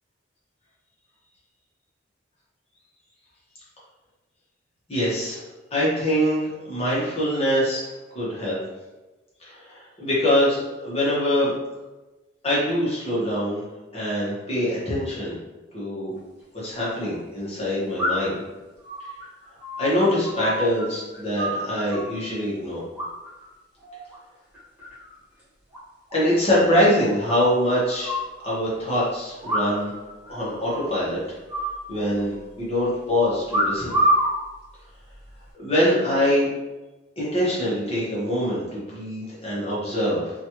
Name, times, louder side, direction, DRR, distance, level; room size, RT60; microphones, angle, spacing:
voice 1, 4.9-5.4 5.7-7.8 8.1-8.6 9.4-11.5 12.4-13.6 13.9-15.3 15.7-16.1 16.5-18.3 19.8-22.8 26.1-29.9 30.3-31.2 31.9-33.9 35.6-36.5 37.2-40.3, equal, 30° left, -7 dB, 1.0 m, -24 dB
sound 1, 16.2-16.3 18.0-18.4 18.8-20.9 21.1-22.2 22.9-23.5 23.8-24.1 24.5-25.1 25.4-25.5 25.7-25.8 26.1-26.2 26.5-26.6 27.3-28.3 29.4-30.0 30.3-30.4 30.7-31.0 31.5-32.4 33.5-34.3 35.1-35.5, equal, 10° right, 1.0 m, -27 dB
3.0 x 2.4 x 2.9 m, 1.1 s
head